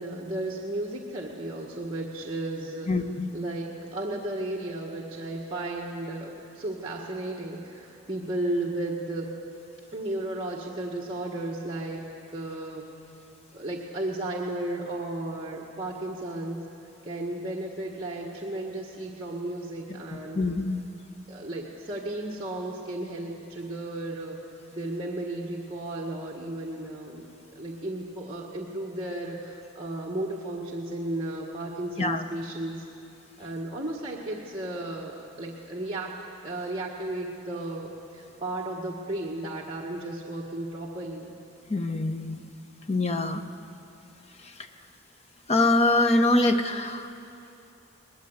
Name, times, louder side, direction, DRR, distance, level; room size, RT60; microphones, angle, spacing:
voice 1, 0.0-2.9 3.3-9.3 9.9-12.0 12.3-12.8 13.5-16.6 17.0-20.4 21.3-24.4 24.7-27.3 27.5-32.7 33.4-36.1 36.4-41.3, right 1 dB, 25° right, -4 dB, 1.6 m, -34 dB
voice 2, 2.9-3.3 20.3-20.8 32.0-32.2 41.7-42.4 42.9-43.4 45.5-47.1, left 2 dB, 30° left, 7 dB, 1.0 m, -24 dB
22.0 x 19.5 x 8.0 m, 2.7 s
head